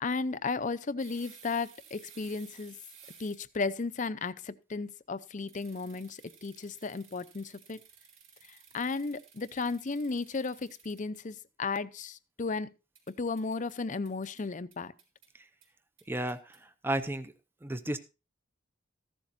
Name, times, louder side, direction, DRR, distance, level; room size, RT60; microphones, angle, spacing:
voice 1, 0.0-2.8 3.2-7.8 8.7-12.7 13.2-14.9, left 4 dB, 40° left, 0.5 m, -34 dB
sound 1, 1.0-3.6 5.5-11.2 12.9-13.7 14.0-14.4 14.7-15.3 15.6-15.7 16.0-16.6, right 6 dB, 70° right, 4.3 m, -56 dB
voice 2, 16.1-16.4 16.8-17.3 17.6-18.0, right 1 dB, 10° right, 0.6 m, -32 dB
14.5 x 11.5 x 2.6 m
head